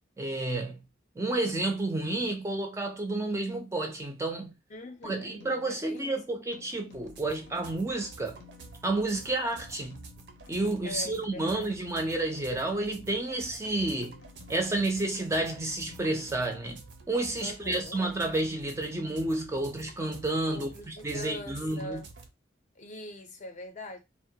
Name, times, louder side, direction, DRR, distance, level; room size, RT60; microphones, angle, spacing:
voice 1, 0.2-0.8 1.2-4.6 5.0-8.4 8.8-10.0 10.5-14.2 14.5-22.0, right 2 dB, 15° right, 0.4 m, -30 dB
voice 2, 4.7-5.3 5.6-6.1 10.8-11.7 17.4-18.0 20.5-22.1 22.8-24.0, left 1 dB, 40° left, 0.5 m, -42 dB
sound 1, 5.0-17.2, left 6 dB, 85° left, 0.6 m, -55 dB
sound 2, 6.9-22.3, right 3 dB, 70° right, 0.5 m, -50 dB
2.1 x 2.1 x 2.7 m
head